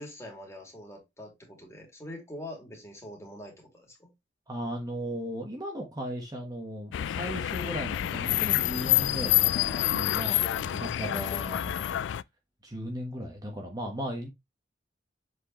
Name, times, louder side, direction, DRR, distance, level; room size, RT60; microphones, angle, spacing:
voice 1, 0.0-4.1, left 1 dB, 15° left, 2.8 m, -44 dB
voice 2, 4.5-12.2 12.6-14.3, equal, 20° right, 1.3 m, -37 dB
sound 1, 6.9-12.2, left 13 dB, 85° left, 0.3 m, -27 dB
7.5 x 4.7 x 3.0 m
head